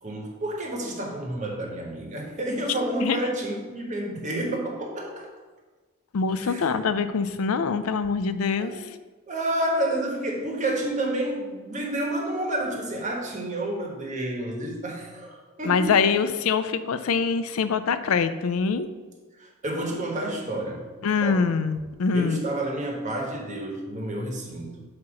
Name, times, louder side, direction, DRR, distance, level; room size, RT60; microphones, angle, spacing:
voice 1, 0.0-5.3 6.4-6.7 8.6-8.8 9.3-15.8 19.4-20.9 21.2-21.5 22.1-24.8, right 1 dB, 35° right, 1 dB, 1.3 m, -30 dB
voice 2, 6.1-9.0 15.6-18.9 21.0-22.4, left 5 dB, 80° left, 11 dB, 0.4 m, -24 dB
8.5 x 2.9 x 6.2 m, 1.4 s
head